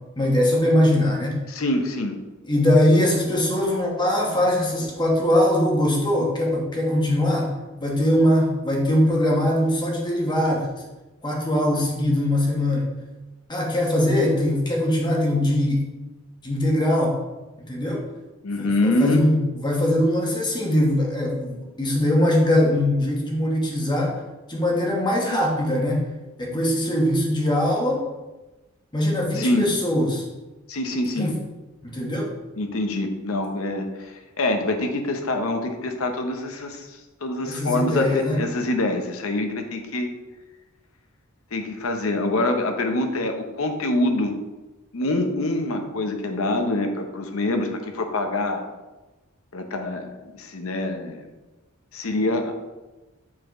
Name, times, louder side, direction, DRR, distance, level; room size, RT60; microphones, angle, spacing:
voice 1, 0.2-1.4 2.4-7.5 7.8-10.8 11.2-12.9 13.5-15.8 16.4-17.2 17.7-18.0 18.6-24.1 24.5-26.1 26.4-28.0 28.9-30.2 31.2-31.4 31.8-32.3 37.5-38.4, left 1 dB, 20° left, -2 dB, 1.2 m, -21 dB
voice 2, 1.5-2.1 18.4-19.3 29.3-29.7 30.7-31.3 32.6-36.9 37.2-40.1 41.5-44.3 44.9-48.6 49.5-51.2 51.9-52.6, left 2 dB, 80° left, 5 dB, 0.8 m, -25 dB
7.3 x 4.3 x 3.1 m, 1.1 s
head